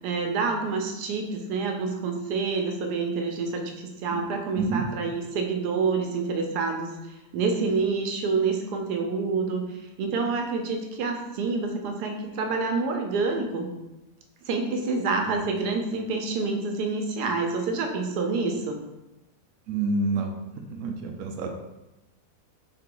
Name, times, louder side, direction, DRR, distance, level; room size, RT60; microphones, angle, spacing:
voice 1, 0.0-13.7 14.5-18.8, right 4 dB, 85° right, 3 dB, 1.2 m, -28 dB
voice 2, 4.5-4.8 15.3-15.4 19.7-20.4 20.7-21.5, right 3 dB, 70° right, 3 dB, 0.9 m, -28 dB
4.1 x 2.8 x 3.8 m, 0.97 s
omnidirectional pair, 1.7 m